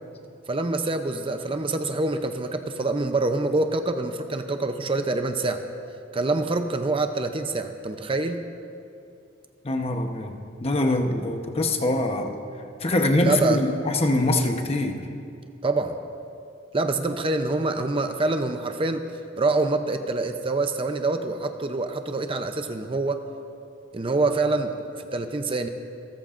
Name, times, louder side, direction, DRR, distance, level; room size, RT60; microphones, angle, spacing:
voice 1, 0.5-5.6 6.1-8.4 13.2-13.6 15.6-16.0 16.7-19.0 19.4-23.2 23.9-25.7, right 3 dB, 30° right, 7 dB, 0.6 m, -26 dB
voice 2, 9.6-10.3 10.6-12.3 12.8-15.0, left 1 dB, 30° left, 4 dB, 1.0 m, -23 dB
27.5 x 14.0 x 2.5 m, 2.5 s
head